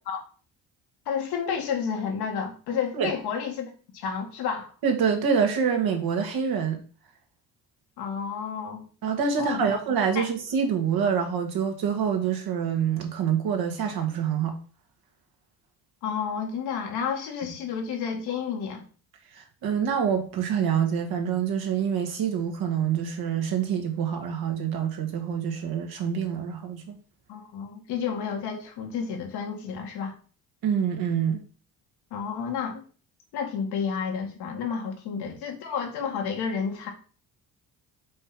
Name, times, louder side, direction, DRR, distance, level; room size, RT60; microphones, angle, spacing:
voice 1, 1.1-4.7 8.0-8.9 9.4-9.7 10.2-10.3 16.0-18.8 27.3-30.1 32.1-32.8 33.3-36.9, left 6 dB, 85° left, 1.8 m, -31 dB
voice 2, 4.8-6.8 9.0-14.5 19.6-27.0 30.6-31.4, right 7 dB, 70° right, 1.7 m, -26 dB
5.3 x 3.7 x 5.8 m
cardioid pair, 85°, 39 cm